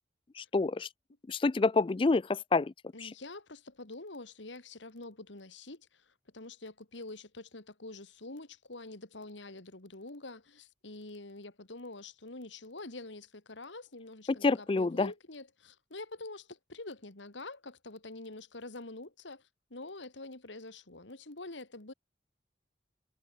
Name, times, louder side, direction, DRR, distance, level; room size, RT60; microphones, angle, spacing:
voice 1, 0.4-0.9 1.3-2.7 3.0-3.1 14.3-15.1, left 3 dB, 30° left, 0.3 m, -28 dB
voice 2, 2.9-21.9, left 2 dB, 80° left, 2.5 m, -46 dB
head